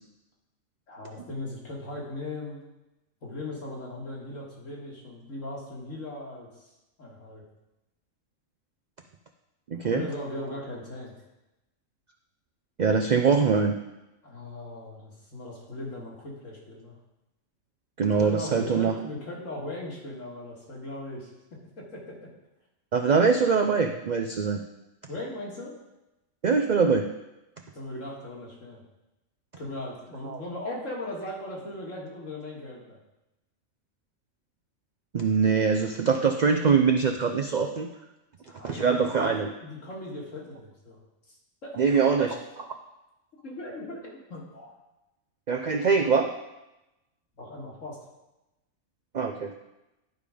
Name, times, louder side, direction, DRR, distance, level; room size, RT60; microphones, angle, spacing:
voice 1, 0.9-2.6 3.2-6.7 7.0-7.4 9.8-11.1 14.2-17.0 18.2-22.3 25.1-25.8 27.7-28.8 29.6-33.0 38.4-42.2 43.4-44.7 47.4-48.0, left 1 dB, 65° left, -3 dB, 2.3 m, -39 dB
voice 2, 9.7-10.0 12.8-13.7 18.0-18.9 22.9-24.6 26.4-27.1 30.3-30.4 35.1-37.9 38.6-39.5 41.8-42.3 42.6-42.7 45.5-46.3 49.1-49.5, right 5 dB, 65° right, 4 dB, 0.4 m, -23 dB
11.0 x 5.1 x 5.0 m, 0.96 s
omnidirectional pair, 1.4 m